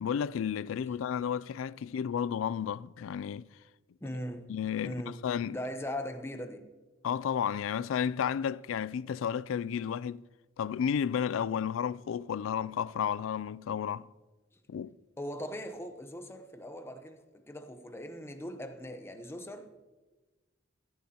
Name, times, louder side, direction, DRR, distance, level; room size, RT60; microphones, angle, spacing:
voice 1, 0.0-3.5 4.5-5.6 7.0-10.2 10.6-14.1 14.7-14.9, left 8 dB, 85° left, 0.3 m, -32 dB
voice 2, 4.0-4.5 4.8-5.2 5.5-6.6 15.2-19.7, equal, 15° left, 0.9 m, -40 dB
14.5 x 14.0 x 2.9 m
head